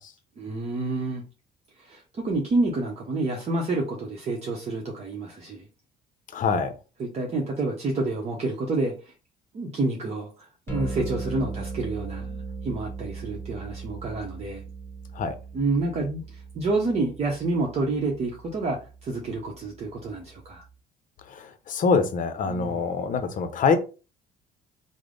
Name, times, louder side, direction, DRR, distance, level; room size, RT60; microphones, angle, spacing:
voice 1, 0.4-1.2 1.8-5.6 7.0-9.1 9.5-14.6 15.5-20.6 22.5-23.0, right 3 dB, 40° right, -1 dB, 0.7 m, -29 dB
voice 2, 6.3-6.7 15.1-15.3 21.3-23.8, left 5 dB, 50° left, 10 dB, 0.6 m, -24 dB
sound 1, 10.7-20.7, right 4 dB, 15° left, 1.1 m, -38 dB
3.3 x 2.0 x 3.7 m, 0.33 s
cardioid pair, 110°, 17 cm